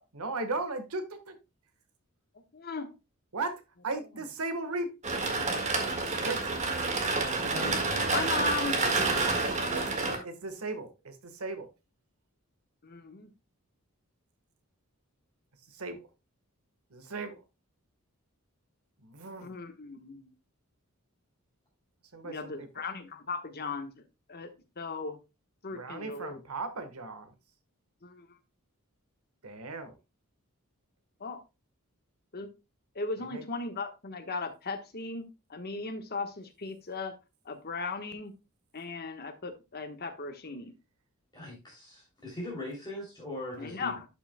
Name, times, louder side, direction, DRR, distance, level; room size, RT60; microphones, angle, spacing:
voice 1, 0.1-1.4 3.3-4.9 6.2-6.4 9.7-11.7 15.7-16.1 16.9-17.4 19.0-19.5 22.1-22.7 25.7-27.3 29.4-30.0 33.2-33.4 43.5-43.7, right 3 dB, 90° right, 1.4 m, -37 dB
voice 2, 2.5-2.9 8.1-8.8 12.8-13.3 19.4-20.3 22.2-23.9 24.3-24.5 24.8-25.2 25.6-26.4 28.0-28.3 31.2-31.4 32.3-32.5 32.9-37.1 37.4-38.3 38.7-40.7 43.6-44.1, left 3 dB, 45° left, 1.2 m, -37 dB
sound 1, 5.0-10.2, right 3 dB, 35° right, 1.7 m, -29 dB
voice 3, 7.3-8.1 41.3-44.0, left 1 dB, 20° left, 2.9 m, -40 dB
11.5 x 6.0 x 2.2 m
head